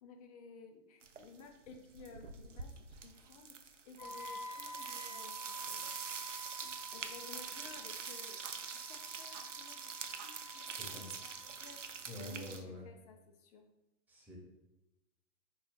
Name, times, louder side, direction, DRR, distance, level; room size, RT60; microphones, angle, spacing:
voice 1, 0.0-5.9 6.9-8.4 8.9-11.8 12.1-13.6, left 4 dB, 35° left, 4 dB, 0.5 m, -55 dB
sound 1, 1.0-1.4 1.7-12.6, right 6 dB, 85° right, 0.5 m, -45 dB
Fire, 2.5-3.6 3.9-5.1 5.5-6.1 6.3-7.7 8.2-8.6 9.1-9.5 10.0-11.6, right 6 dB, 35° right, 0.5 m, -59 dB
Wind instrument woodwind instrument, 4.0-11.9, equal, 65° left, 1.0 m, -50 dB
voice 2, 10.6-11.1 12.1-12.9 14.1-14.4, equal, 5° right, -3 dB, 0.9 m, -47 dB
4.2 x 2.9 x 3.6 m, 0.96 s
figure-of-eight pair, 100°, 36 cm